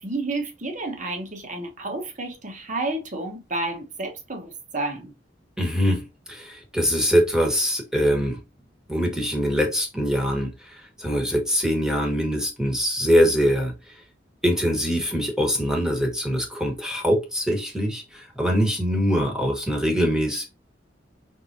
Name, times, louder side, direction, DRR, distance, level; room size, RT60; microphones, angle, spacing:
voice 1, 0.0-5.1, right 2 dB, 40° right, 1.2 m, -31 dB
voice 2, 5.6-8.4 8.9-13.7 14.4-20.5, equal, 5° right, 1.3 m, -23 dB
4.7 x 3.7 x 2.7 m
head